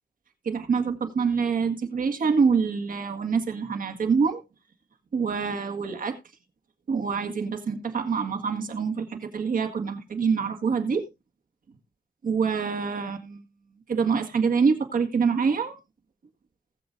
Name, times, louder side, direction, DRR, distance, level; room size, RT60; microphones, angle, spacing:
voice 1, 0.5-4.4 5.1-6.2 6.9-11.0 12.2-13.4 13.9-15.8, right 5 dB, 65° right, 1.8 m, -25 dB
19.5 x 7.1 x 2.6 m
wide cardioid pair, 155°, 15 cm